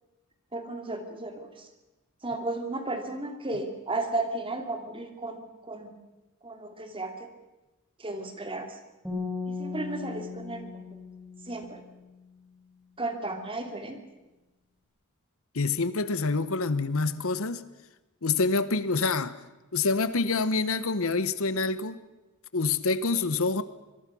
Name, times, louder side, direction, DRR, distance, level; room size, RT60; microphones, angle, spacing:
voice 1, 0.5-1.7 2.2-5.9 6.4-7.3 8.0-8.8 9.5-10.8 11.5-11.8 13.0-14.0, right 2 dB, 25° right, 5 dB, 2.8 m, -34 dB
sound 1, 9.0-12.2, left 4 dB, 5° right, 6.5 m, -37 dB
voice 2, 15.5-17.6 18.2-19.4 19.7-22.0 22.5-23.6, left 3 dB, 65° left, 14 dB, 1.0 m, -26 dB
25.5 x 22.0 x 6.1 m, 1.1 s
head